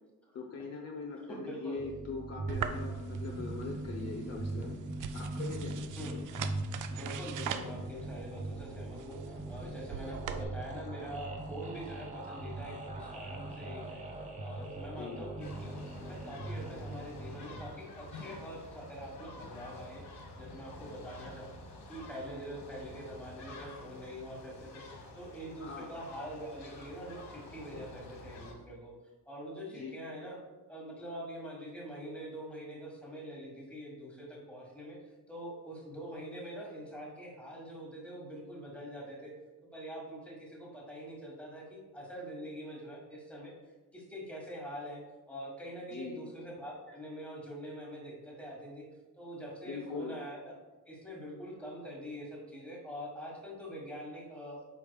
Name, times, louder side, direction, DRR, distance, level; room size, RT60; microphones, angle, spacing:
voice 1, 0.3-6.1 15.0-15.2 25.6-25.9 29.7-29.9 45.9-46.2 49.7-50.2, left 4 dB, 45° left, -1 dB, 0.7 m, -41 dB
voice 2, 1.3-1.8 6.0-6.2 6.9-14.0 14.4-15.7 16.0-21.5 21.9-28.9 29.3-30.4 30.7-35.0 35.3-39.3 39.6-43.5 43.9-45.0 45.3-48.9 49.2-50.5 50.9-54.6, equal, 5° left, -3 dB, 1.6 m, -44 dB
sound 1, 1.8-17.7, right 2 dB, 20° right, 0.8 m, -40 dB
sound 2, 2.5-10.4, right 8 dB, 60° right, 0.5 m, -43 dB
sound 3, 15.4-28.5, left 2 dB, 85° left, 1.4 m, -49 dB
8.4 x 5.3 x 2.3 m, 1.2 s
cardioid pair, 140°, 36 cm